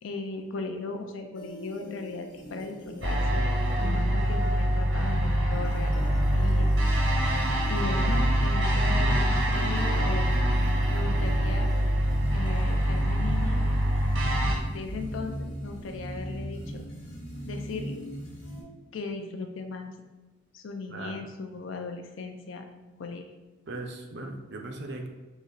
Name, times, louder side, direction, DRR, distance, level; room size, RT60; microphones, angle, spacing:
voice 1, 0.0-3.5 3.8-6.0 6.3-6.7 7.7-10.3 10.9-11.7 12.3-13.7 14.3-16.8 17.5-18.0 18.9-19.9 20.5-23.3, left 3 dB, 70° left, 5 dB, 0.5 m, -37 dB
sound 1, 1.3-18.6, equal, 50° left, 1.2 m, -42 dB
sound 2, 3.0-14.5, equal, 80° right, 1.1 m, -25 dB
voice 2, 3.8-4.2 20.9-21.2 23.7-25.1, right 2 dB, 55° right, 3 dB, 0.6 m, -39 dB
sound 3, 4.6-16.8, equal, 5° left, 0.4 m, -38 dB
4.0 x 3.0 x 3.9 m, 1.2 s
head